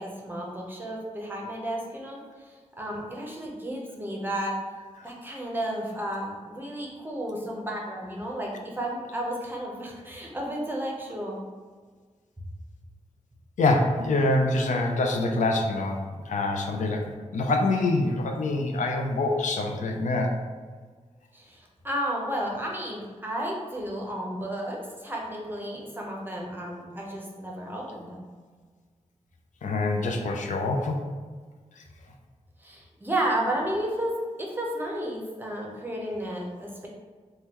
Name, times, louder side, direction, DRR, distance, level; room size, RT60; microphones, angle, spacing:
voice 1, 0.0-4.5 5.0-11.4 21.3-28.3 32.6-36.9, right 1 dB, 15° right, -2 dB, 0.6 m, -32 dB
voice 2, 13.6-20.4 29.6-31.0 31.8-31.9, left 2 dB, 80° left, 2 dB, 0.4 m, -25 dB
3.5 x 2.2 x 2.9 m, 1.5 s
wide cardioid pair, 120°, 13 cm